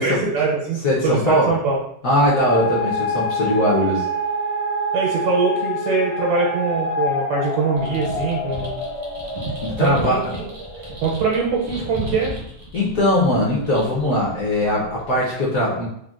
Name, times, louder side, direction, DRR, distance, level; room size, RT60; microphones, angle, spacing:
voice 1, 0.0-1.8 4.9-8.7 9.8-10.5 11.0-12.3, right 4 dB, 85° right, -4 dB, 1.3 m, -22 dB
voice 2, 0.8-1.5 2.0-4.1 9.6-10.2 12.7-15.9, equal, 60° left, -5 dB, 0.9 m, -20 dB
sound 1, 2.3-12.3, left 1 dB, 90° left, 1.6 m, -27 dB
sound 2, 7.7-15.2, right 1 dB, 50° right, 0.6 m, -35 dB
3.7 x 2.1 x 2.3 m, 0.74 s
omnidirectional pair, 2.1 m